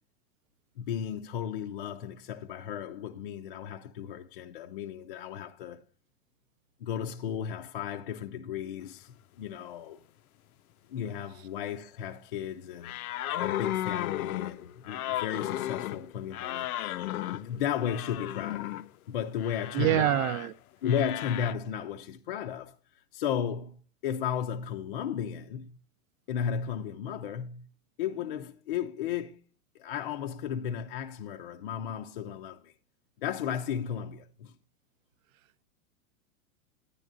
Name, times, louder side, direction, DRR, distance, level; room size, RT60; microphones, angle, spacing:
voice 1, 0.8-5.8 6.8-10.0 10.9-13.0 13.4-16.7 17.3-18.8 19.1-20.2 20.8-22.7 23.1-25.8 26.3-27.7 28.0-29.4 29.8-32.7 33.2-34.5, left 8 dB, 40° left, 0.5 m, -34 dB
sound 1, 12.8-18.9 19.4-20.5 20.9-21.5, left 13 dB, 85° left, 0.6 m, -34 dB
voice 2, 19.7-20.5, right 14 dB, 65° right, 0.6 m, -25 dB
10.5 x 9.9 x 2.4 m
supercardioid pair, 170°, 42 cm